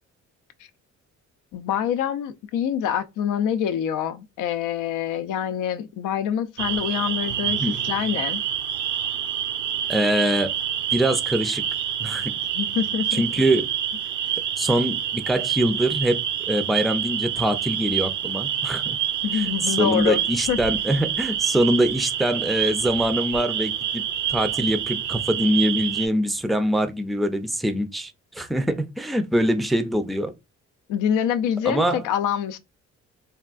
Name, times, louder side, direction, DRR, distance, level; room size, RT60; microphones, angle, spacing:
voice 1, 1.5-8.4 12.6-13.2 19.2-20.2 20.5-20.6 30.9-32.6, left 9 dB, 90° left, 0.5 m, -25 dB
sound 1, 6.6-26.1, right 10 dB, 75° right, 0.6 m, -27 dB
voice 2, 9.9-10.5 10.9-11.6 12.0-12.3 13.2-13.7 14.6-16.2 16.5-19.0 19.3-24.0 24.3-30.3 31.7-32.0, right 1 dB, ahead, 0.4 m, -23 dB
3.4 x 2.3 x 2.4 m
cardioid pair, 90°, 30 cm